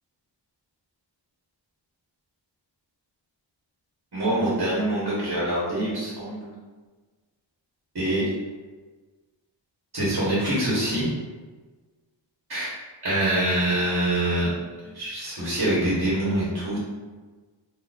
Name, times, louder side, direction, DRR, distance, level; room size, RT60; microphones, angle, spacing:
voice 1, 4.1-6.5 7.9-8.3 9.9-11.1 12.5-12.7 13.0-14.5 14.8-16.8, right 1 dB, 55° right, -9 dB, 1.3 m, -25 dB
3.9 x 2.7 x 2.5 m, 1.3 s
wide cardioid pair, 75°, 45 cm